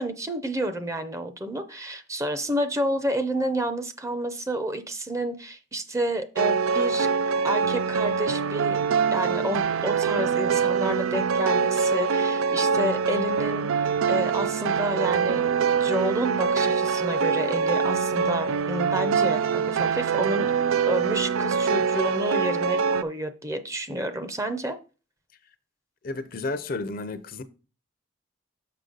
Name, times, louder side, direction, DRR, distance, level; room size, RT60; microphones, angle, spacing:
voice 1, 0.0-7.1 7.4-8.8 9.1-15.4 15.8-20.5 20.9-24.7, right 1 dB, 15° right, 0.6 m, -30 dB
sound 1, 6.4-23.0, right 6 dB, 85° right, 0.4 m, -24 dB
voice 2, 26.0-27.4, left 3 dB, 45° left, 0.5 m, -32 dB
6.6 x 5.7 x 3.9 m
head